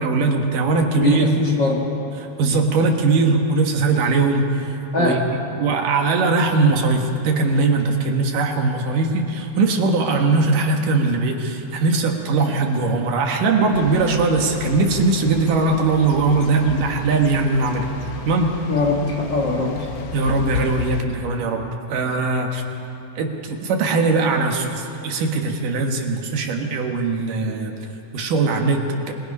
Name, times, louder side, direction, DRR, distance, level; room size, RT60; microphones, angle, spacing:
voice 1, 0.0-1.3 2.4-4.5 5.0-5.2 5.5-17.9 18.3-18.6 20.1-22.6 23.2-27.7 28.1-29.1, right 3 dB, 75° right, 2 dB, 3.2 m, -20 dB
voice 2, 1.0-1.9 4.9-5.2 18.7-19.9, left 3 dB, 40° left, -1 dB, 1.8 m, -21 dB
sound 1, 13.7-21.0, left 5 dB, 90° left, 1.1 m, -33 dB
26.0 x 21.5 x 5.5 m, 2.9 s
omnidirectional pair, 3.9 m